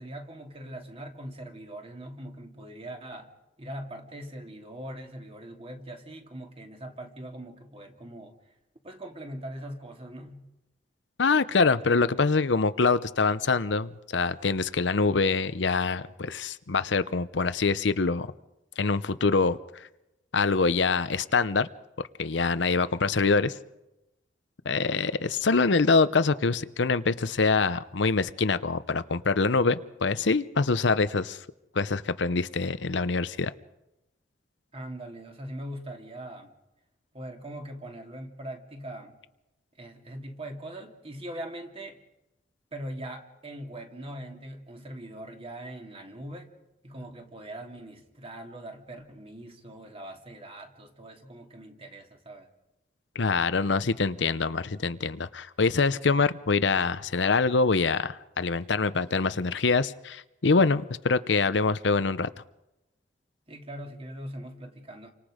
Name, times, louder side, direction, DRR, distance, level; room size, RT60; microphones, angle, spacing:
voice 1, 0.0-3.3 3.6-8.3 8.8-10.4 34.7-36.5 37.1-39.2 39.8-42.0 42.7-46.5 46.8-52.5 63.5-65.1, right 1 dB, 30° right, 2.6 m, -41 dB
voice 2, 11.2-18.3 18.8-19.6 20.3-21.7 22.2-23.6 24.7-31.4 31.7-33.5 53.1-62.3, left 4 dB, 70° left, 0.7 m, -25 dB
30.0 x 25.0 x 5.1 m
head